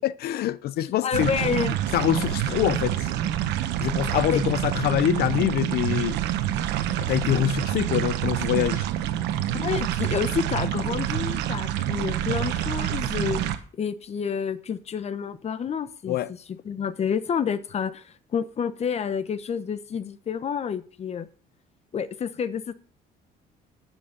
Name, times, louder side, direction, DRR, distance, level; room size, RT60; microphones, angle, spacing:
voice 1, 0.0-1.5 1.9-3.1 3.8-6.2 6.9-8.9 16.1-16.3, left 13 dB, 70° left, 0.6 m, -25 dB
voice 2, 1.0-1.8 4.3-4.4 9.5-16.4 16.6-21.3 21.9-22.7, left 7 dB, 40° left, 0.9 m, -29 dB
sound 1, 1.1-13.6, right 12 dB, 90° right, 1.1 m, -27 dB
11.0 x 6.3 x 6.7 m
cardioid pair, 110°, 17 cm